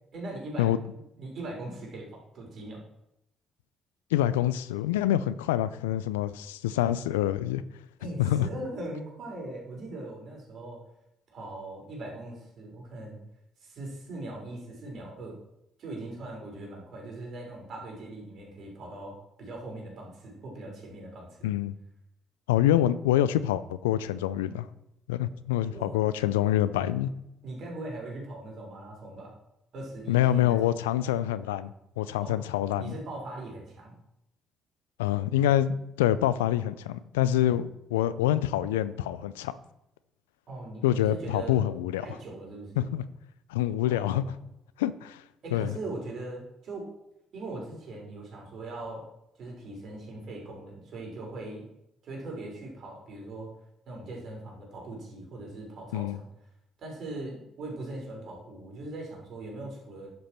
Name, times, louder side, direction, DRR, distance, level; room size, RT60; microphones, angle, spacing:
voice 1, 0.1-2.8 8.0-10.8 11.3-13.2 13.6-15.4 15.8-21.5 25.7-26.0 27.4-29.3 29.7-30.8 32.2-32.4 32.8-34.0 40.5-41.6 42.0-42.9 43.8-44.3 45.4-46.9 47.3-49.0 49.4-51.7 52.0-53.5 53.9-56.3 56.8-60.1, right 2 dB, 60° right, -1 dB, 4.6 m, -40 dB
voice 2, 4.1-7.6 8.2-8.5 21.4-21.7 22.5-24.7 25.1-27.1 30.1-32.9 35.0-39.5 40.8-42.1 42.8-43.0 43.5-44.4 44.8-45.2 45.5-45.7 55.9-56.2, left 12 dB, 85° left, 16 dB, 0.4 m, -26 dB
11.0 x 7.9 x 4.4 m, 0.83 s
hypercardioid pair, 50°, 0 cm